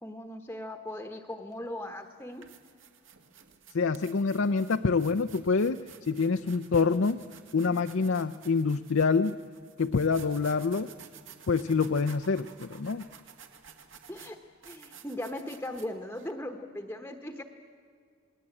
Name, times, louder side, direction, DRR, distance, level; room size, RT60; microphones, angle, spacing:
voice 1, 0.0-2.5 14.1-14.4 14.6-17.4, left 1 dB, 10° left, 6 dB, 1.1 m, -38 dB
sound 1, 1.5-1.7 2.2-16.3, right 7 dB, 65° right, 2.2 m, -53 dB
voice 2, 3.7-5.8 6.1-7.2 7.5-9.4 9.8-10.9 11.5-13.0, left 4 dB, 65° left, 8 dB, 0.5 m, -26 dB
28.5 x 20.0 x 8.8 m, 2.2 s
head